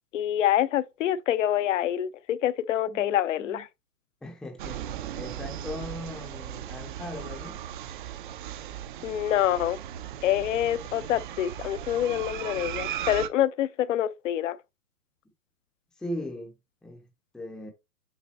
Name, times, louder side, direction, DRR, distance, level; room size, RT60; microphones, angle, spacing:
voice 1, 0.1-3.7 9.0-9.8 10.2-14.6, left 11 dB, 55° left, 0.8 m, -26 dB
voice 2, 2.9-3.6 4.2-4.9 5.1-7.6 16.0-16.5 16.8-17.1 17.3-17.7, left 1 dB, ahead, 0.7 m, -39 dB
sound 1, 4.6-13.3, right 11 dB, 35° right, 0.7 m, -37 dB
7.5 x 3.8 x 4.2 m
hypercardioid pair, 140°, 46 cm